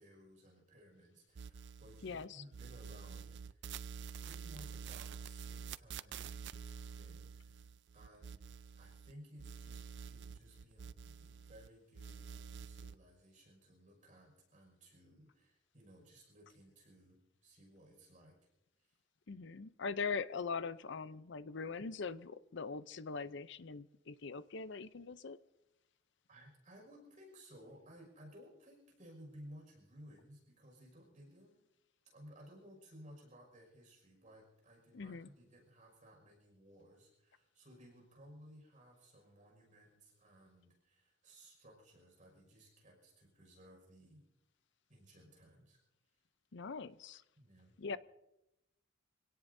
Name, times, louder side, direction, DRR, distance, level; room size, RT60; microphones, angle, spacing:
voice 1, 0.0-3.7 4.2-8.4 8.8-18.4 18.8-19.0 26.3-31.6 32.0-44.2 44.9-45.8 46.1-46.2 47.4-47.8, equal, 40° right, 0 dB, 5.7 m, -59 dB
sound 1, 1.4-2.3 2.5-9.1 9.4-11.7 11.9-12.9, right 6 dB, 65° right, 0.4 m, -48 dB
voice 2, 2.0-2.4 19.3-25.4 34.9-35.3 46.5-47.2 47.8-48.0, left 5 dB, 65° left, 15 dB, 0.6 m, -42 dB
26.5 x 17.5 x 2.7 m, 0.89 s
head